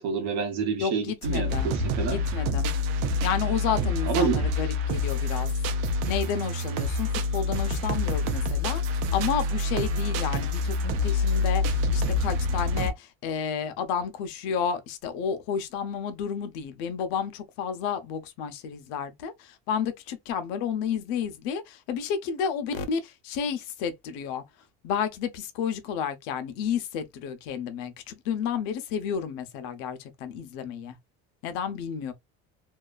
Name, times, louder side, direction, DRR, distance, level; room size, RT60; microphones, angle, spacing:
voice 1, 0.0-2.2 4.1-4.4, right 5 dB, 55° right, 1.1 m, -28 dB
voice 2, 0.8-1.8 2.1-2.8 3.2-5.5 6.1-24.4 24.8-31.0 31.4-32.1, left 7 dB, 85° left, 0.8 m, -31 dB
sound 1, 1.2-12.9, left 2 dB, 75° right, 0.7 m, -27 dB
2.7 x 2.3 x 2.4 m
cardioid pair, 150°, 31 cm